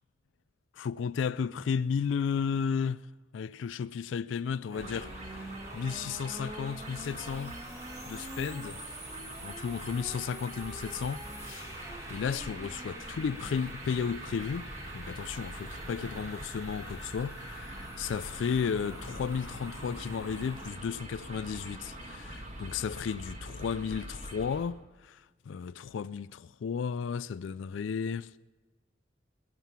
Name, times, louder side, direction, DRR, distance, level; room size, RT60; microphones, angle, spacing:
voice 1, 0.7-3.0 3.3-7.6 8.1-8.8 9.4-11.8 12.1-14.7 14.9-28.3, left 6 dB, 80° left, 0.3 m, -34 dB
sound 1, 4.7-20.7, right 1 dB, 15° right, 2.0 m, -45 dB
sound 2, 4.8-24.6, right 1 dB, 35° right, 1.8 m, -45 dB
21.0 x 7.6 x 7.1 m
head